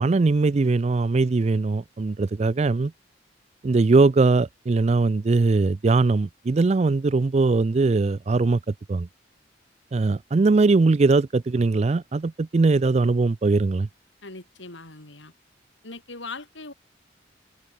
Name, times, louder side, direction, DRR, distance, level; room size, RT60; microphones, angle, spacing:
voice 1, 0.0-2.9 3.6-9.1 9.9-13.9, right 3 dB, 35° right, 0.4 m, -21 dB
voice 2, 14.2-15.3 15.8-16.7, left 3 dB, 85° left, 5.3 m, -40 dB
head